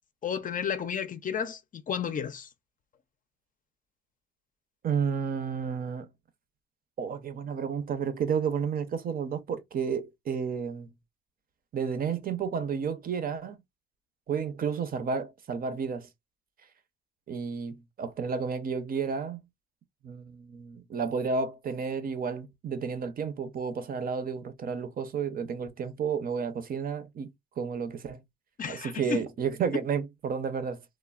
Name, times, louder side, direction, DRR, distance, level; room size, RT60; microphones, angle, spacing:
voice 1, 0.2-2.5 28.6-29.3, left 7 dB, 45° left, 0.5 m, -32 dB
voice 2, 4.8-6.1 7.0-10.9 11.7-13.6 14.3-16.1 17.3-19.4 20.0-28.2 28.7-30.8, right 6 dB, 50° right, 0.6 m, -31 dB
3.1 x 2.0 x 2.3 m
cardioid pair, 90°, 20 cm